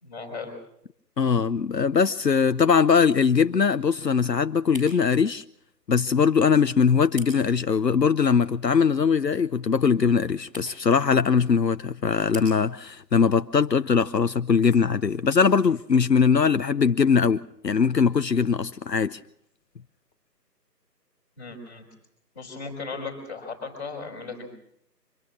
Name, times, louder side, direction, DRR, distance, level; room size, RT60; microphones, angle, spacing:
voice 1, 0.0-0.5 21.4-21.9 22.3-24.5, left 4 dB, 10° left, 4.0 m, -36 dB
voice 2, 1.2-5.4 5.9-19.2, left 6 dB, 75° left, 0.9 m, -21 dB
sound 1, 1.2-16.0, left 1 dB, 5° right, 6.5 m, -51 dB
25.0 x 19.5 x 6.2 m
figure-of-eight pair, 170°, 50 cm